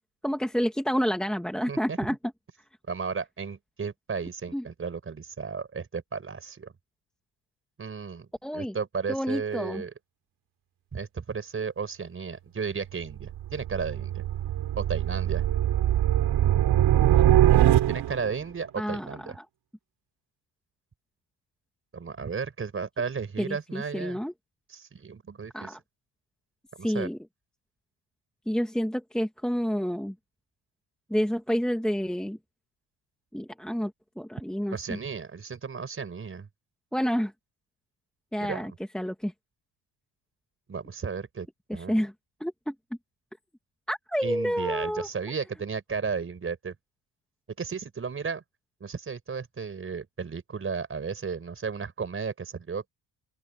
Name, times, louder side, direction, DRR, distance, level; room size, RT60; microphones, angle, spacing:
voice 1, 0.2-2.2 4.5-4.6 8.4-8.7 9.1-9.8 18.8-19.4 23.4-24.3 25.5-25.8 26.8-27.2 28.4-30.1 31.1-32.4 33.3-33.9 34.2-35.0 36.9-37.3 38.3-39.3 41.7-42.1 42.4-42.7 43.9-45.1, equal, ahead, 1.7 m, -29 dB
voice 2, 1.7-2.0 2.9-6.7 7.8-9.9 10.9-14.2 14.8-15.4 17.9-19.4 21.9-24.2 24.7-25.8 26.8-27.1 34.7-36.5 38.4-38.7 40.7-41.5 41.7-42.0 44.2-46.7 47.6-48.4 48.8-52.9, right 5 dB, 30° right, 5.5 m, -34 dB
sound 1, 13.1-18.4, right 12 dB, 70° right, 4.6 m, -22 dB
open air
cardioid pair, 130°, 41 cm